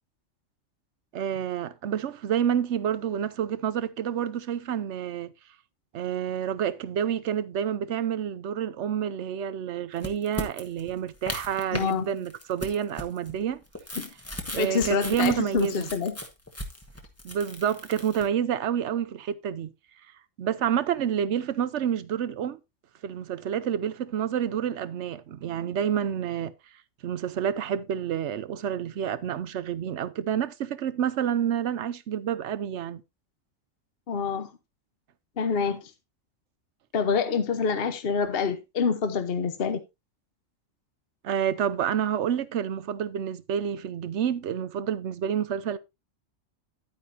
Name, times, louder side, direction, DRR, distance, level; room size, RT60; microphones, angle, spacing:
voice 1, 1.1-5.3 5.9-13.6 14.5-15.9 17.2-19.7 20.4-22.6 23.0-26.5 27.0-33.0 41.2-45.8, right 9 dB, 65° right, 0.9 m, -28 dB
sound 1, 10.0-11.9 12.3-18.3, left 1 dB, 10° left, 1.2 m, -37 dB
voice 2, 11.7-12.1 14.0-14.1 14.5-16.1 34.1-34.5 35.4-35.9 36.9-39.8, left 5 dB, 50° left, 1.1 m, -26 dB
10.5 x 9.2 x 2.7 m
omnidirectional pair, 1.4 m